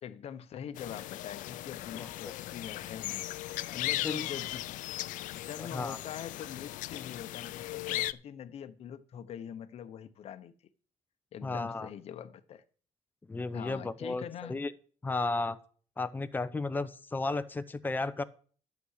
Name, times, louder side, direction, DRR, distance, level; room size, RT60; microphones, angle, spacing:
voice 1, 0.0-3.3 3.7-4.8 5.3-10.5 11.3-12.6 13.5-14.6, left 9 dB, 50° left, 1.0 m, -43 dB
sound 1, 0.8-8.1, left 15 dB, 85° left, 0.5 m, -37 dB
voice 2, 5.6-6.0 11.4-11.9 13.3-14.7 15.0-15.6 16.0-18.2, left 3 dB, 15° left, 0.7 m, -34 dB
11.5 x 7.1 x 6.5 m
cardioid pair, 140°, 13 cm